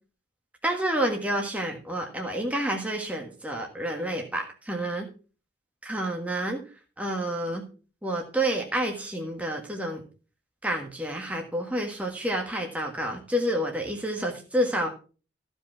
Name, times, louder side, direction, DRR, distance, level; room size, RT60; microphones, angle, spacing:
voice 1, 0.6-5.0 5.8-6.6 7.0-7.6 8.0-10.0 10.6-14.9, right 1 dB, 10° right, 1 dB, 1.6 m, -29 dB
14.5 x 5.4 x 5.8 m, 0.37 s
head